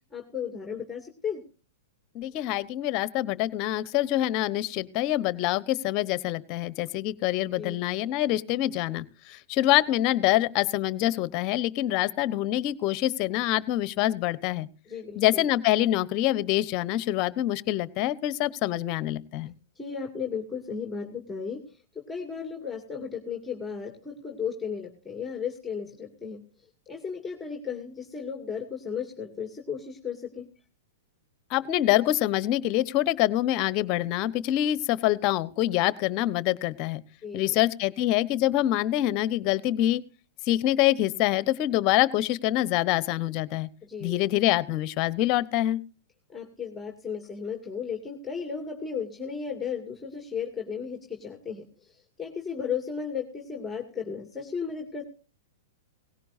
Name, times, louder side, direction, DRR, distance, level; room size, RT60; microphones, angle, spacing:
voice 1, 0.1-1.4 7.6-7.8 14.9-15.4 19.8-21.8 22.1-26.4 26.9-30.5 37.2-37.6 43.8-44.2 46.3-51.9 52.2-55.0, left 6 dB, 10° left, 3 dB, 2.3 m, -35 dB
voice 2, 2.1-14.7 15.1-19.5 31.5-37.0 37.3-40.0 40.5-43.7 44.0-45.8, left 14 dB, 45° left, 18 dB, 1.1 m, -25 dB
18.5 x 16.5 x 2.7 m, 0.35 s
hypercardioid pair, 115°, 0 cm